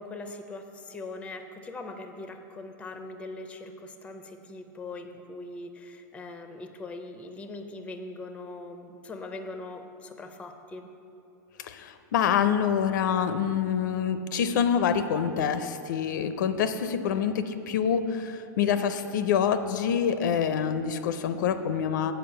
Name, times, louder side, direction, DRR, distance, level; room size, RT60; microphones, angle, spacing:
voice 1, 0.0-10.9, left 2 dB, 10° left, 7 dB, 0.5 m, -41 dB
voice 2, 11.6-22.1, left 7 dB, 75° left, 10 dB, 0.5 m, -26 dB
7.8 x 4.9 x 6.8 m, 2.8 s
supercardioid pair, 135°, 10 cm